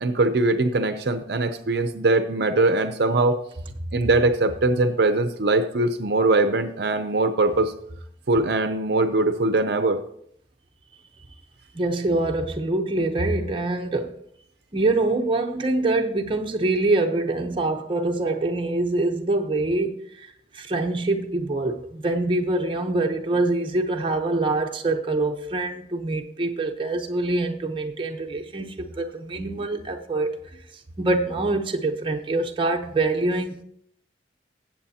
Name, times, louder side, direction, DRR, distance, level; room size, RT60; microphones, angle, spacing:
voice 1, 0.0-3.4 3.9-7.7 8.3-10.0, right 2 dB, 60° right, 0.6 m, -21 dB
voice 2, 11.7-14.1 14.7-20.3 20.5-30.3 31.0-33.6, right 2 dB, 30° right, 0.8 m, -25 dB
17.5 x 7.8 x 2.8 m
head